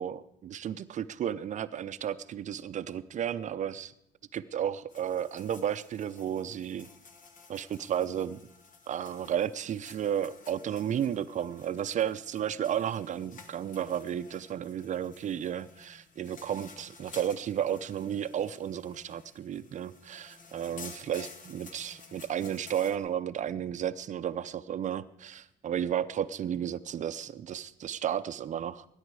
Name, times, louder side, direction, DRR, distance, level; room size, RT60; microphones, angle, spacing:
voice 1, 0.0-3.9 4.3-6.9 7.5-8.4 8.9-28.9, right 9 dB, 45° right, 13 dB, 0.6 m, -33 dB
sound 1, 4.9-23.0, left 4 dB, 50° left, 1.8 m, -53 dB
20.5 x 9.9 x 4.8 m, 0.78 s
cardioid pair, 110°, 17 cm